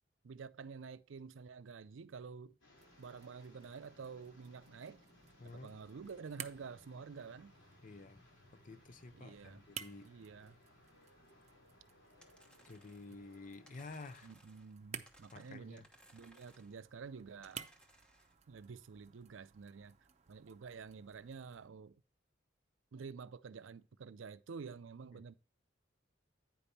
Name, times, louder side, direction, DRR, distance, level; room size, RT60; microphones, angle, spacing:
voice 1, 0.2-2.6 3.0-5.0 5.4-7.5 9.1-9.6 10.0-10.6 14.2-15.8 16.1-17.7 18.5-20.0 20.3-22.0 22.9-25.3, right 5 dB, 85° right, 0.5 m, -49 dB
sound 1, 2.6-14.3, left 1 dB, 90° left, 3.9 m, -65 dB
sound 2, 2.7-21.7, right 8 dB, 35° right, 0.6 m, -56 dB
voice 2, 5.4-5.8 7.8-8.2 8.6-10.1 12.7-14.3 15.3-15.9 25.1-25.2, left 3 dB, 45° left, 0.7 m, -51 dB
sound 3, 12.2-13.2 13.7-14.8 15.1-16.8 17.4-18.4, equal, 5° left, 1.1 m, -65 dB
9.2 x 5.3 x 4.2 m
head